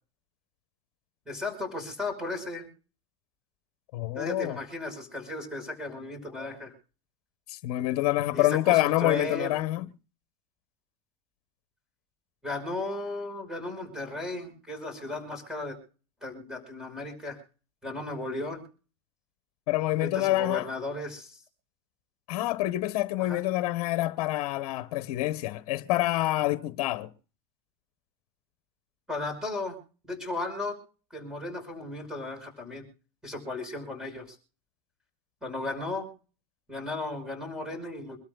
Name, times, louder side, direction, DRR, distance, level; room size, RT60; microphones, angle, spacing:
voice 1, 1.3-2.7 4.2-6.7 8.3-9.5 12.4-15.8 16.2-17.4 17.8-18.6 20.0-21.4 23.2-23.4 29.1-29.8 30.1-30.8 31.1-32.8 33.2-34.4 35.4-36.1 36.7-38.2, left 2 dB, 5° right, 5.3 m, -35 dB
voice 2, 3.9-4.6 7.5-9.9 19.7-20.7 22.3-27.1, left 16 dB, 65° left, 1.0 m, -27 dB
25.5 x 13.0 x 2.3 m
supercardioid pair, 135°, 19 cm